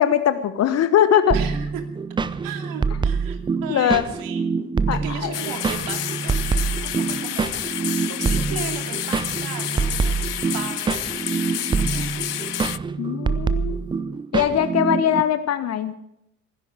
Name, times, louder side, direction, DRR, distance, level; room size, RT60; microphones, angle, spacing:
voice 1, 0.0-1.4 3.7-4.0 4.9-5.3 13.0-13.8 14.3-15.9, left 9 dB, 35° left, 12 dB, 1.2 m, -20 dB
sound 1, 1.3-15.2, right 5 dB, 10° right, 0.6 m, -25 dB
voice 2, 1.3-1.8 2.4-4.6 4.9-7.6 8.0-11.2 11.8-12.3 14.7-15.0, right 9 dB, 45° right, 5 dB, 2.8 m, -37 dB
sound 2, 5.3-12.8, left 12 dB, 80° left, 0.5 m, -30 dB
17.5 x 15.5 x 4.8 m, 0.81 s
figure-of-eight pair, 70°, 46 cm